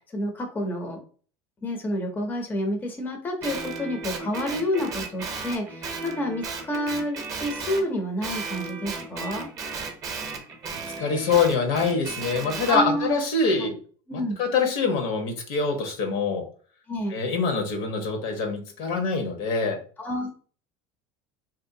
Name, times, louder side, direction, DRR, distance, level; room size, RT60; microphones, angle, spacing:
voice 1, 0.1-1.0 1.6-9.5 12.7-13.2 13.6-13.7 14.1-14.4 16.9-17.1 20.0-20.3, left 1 dB, 15° left, 2 dB, 0.6 m, -29 dB
Guitar, 3.4-7.9 8.2-12.8, right 4 dB, 30° right, 0.7 m, -35 dB
voice 2, 11.0-13.8 14.4-16.4 17.1-19.8, left 4 dB, 70° left, 4 dB, 1.0 m, -24 dB
3.0 x 2.7 x 2.6 m, 0.42 s
supercardioid pair, 135°, 12 cm